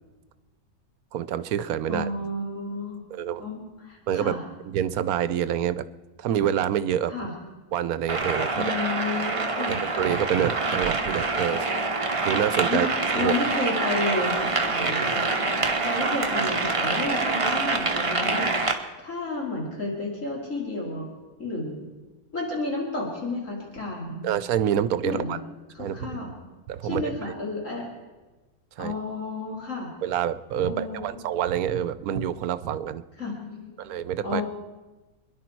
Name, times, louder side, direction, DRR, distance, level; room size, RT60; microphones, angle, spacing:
voice 1, 1.1-2.1 3.1-3.4 4.1-4.4 4.6-5.8 6.2-7.1 7.7-8.5 9.7-11.7 12.2-12.9 13.1-13.3 14.8-15.1 24.2-25.4 25.8-26.3 26.7-27.3 28.8-28.9 30.0-33.0 33.8-34.4, right 10 dB, 80° right, 14 dB, 1.1 m, -27 dB
voice 2, 1.9-3.0 3.4-4.4 7.1-7.3 8.5-9.8 12.7-12.8 13.1-21.1 21.4-21.9 22.3-24.3 25.0-25.4 25.7-26.3 26.8-27.8 28.8-29.9 30.6-31.2 33.2-33.8 34.2-34.4, left 2 dB, 55° left, -3 dB, 3.3 m, -32 dB
sound 1, 8.1-18.7, right 3 dB, 25° right, 1.1 m, -26 dB
26.5 x 11.0 x 4.6 m, 1.2 s
omnidirectional pair, 1.6 m